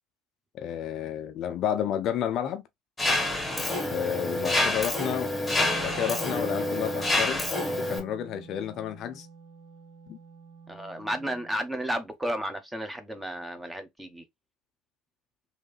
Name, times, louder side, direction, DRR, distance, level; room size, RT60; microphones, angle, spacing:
voice 1, 0.5-2.6 3.9-5.3 5.8-7.4 7.8-9.3 10.1-10.2, left 9 dB, 50° left, 0.4 m, -31 dB
Mechanisms, 3.0-8.0, left 1 dB, 15° left, 1.3 m, -27 dB
Wind instrument woodwind instrument, 5.5-11.6, right 3 dB, 80° right, 1.4 m, -44 dB
voice 2, 10.7-14.2, equal, 10° right, 0.9 m, -33 dB
3.1 x 2.7 x 3.2 m
hypercardioid pair, 65°, 0 cm